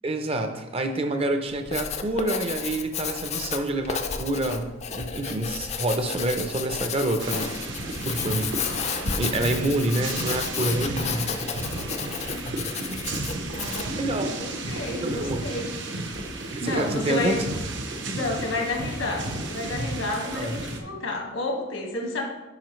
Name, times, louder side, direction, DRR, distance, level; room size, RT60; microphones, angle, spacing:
voice 1, 0.0-7.5 7.8-8.5 9.2-11.3 13.9-14.3 15.0-15.4 16.5-17.4 18.1-18.2 20.3-20.5, right 1 dB, 30° right, 7 dB, 0.6 m, -27 dB
Writing, 1.5-14.0, left 6 dB, 35° left, 0.4 m, -32 dB
sound 1, 7.2-20.8, right 2 dB, 65° right, 0.9 m, -33 dB
voice 2, 12.6-13.9 14.2-15.8 16.4-17.4 18.1-22.2, left 2 dB, 85° left, 1 dB, 1.6 m, -31 dB
9.0 x 5.6 x 3.1 m, 1.1 s
head